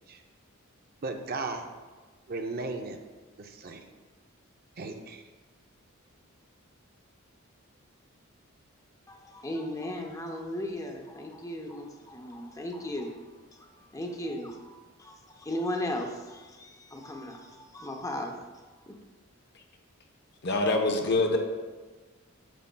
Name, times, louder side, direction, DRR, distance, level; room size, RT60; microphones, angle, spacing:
voice 1, 1.0-1.7 2.3-3.0 3.4-3.8 4.8-5.2, right 3 dB, 45° right, 5 dB, 0.5 m, -35 dB
voice 2, 9.1-13.2 13.5-18.4 18.8-19.0, left 1 dB, 15° left, 3 dB, 0.7 m, -36 dB
voice 3, 20.4-21.4, left 2 dB, 55° left, 3 dB, 0.8 m, -25 dB
9.0 x 7.2 x 2.2 m, 1.3 s
head